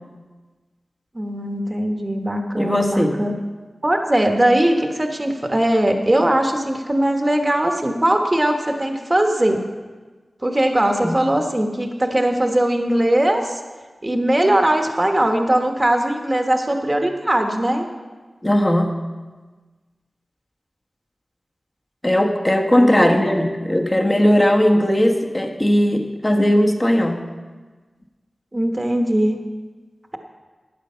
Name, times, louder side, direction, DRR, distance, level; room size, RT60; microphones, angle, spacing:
voice 1, 1.1-3.4 3.8-9.6 10.4-13.6 14.0-17.9 22.7-23.2 28.5-29.4, right 1 dB, 25° right, 4 dB, 1.2 m, -20 dB
voice 2, 2.6-3.2 11.0-11.2 18.4-18.9 22.0-27.2, equal, 20° left, 3 dB, 1.2 m, -18 dB
12.0 x 9.2 x 5.6 m, 1.3 s
wide cardioid pair, 75°, 0 cm